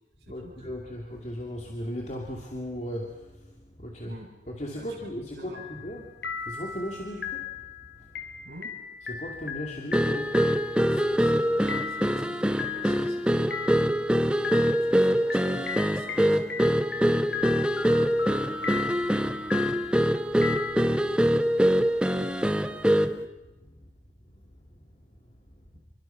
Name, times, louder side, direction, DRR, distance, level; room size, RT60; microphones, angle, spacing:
voice 1, 0.3-4.2 4.5-8.4 9.1-10.7 18.5-20.1 23.6-23.9 24.5-25.4, equal, 40° left, 0 dB, 2.7 m, -39 dB
voice 2, 5.2-5.6 8.4-8.7 10.9-13.4 13.8-17.5, right 1 dB, 60° right, -2 dB, 7.6 m, -48 dB
sound 1, 5.5-6.0 6.2-20.7, left 6 dB, 65° left, 2.9 m, -36 dB
sound 2, 9.9-23.2, equal, 5° right, 0.9 m, -24 dB
27.5 x 24.0 x 5.9 m, 1.1 s
head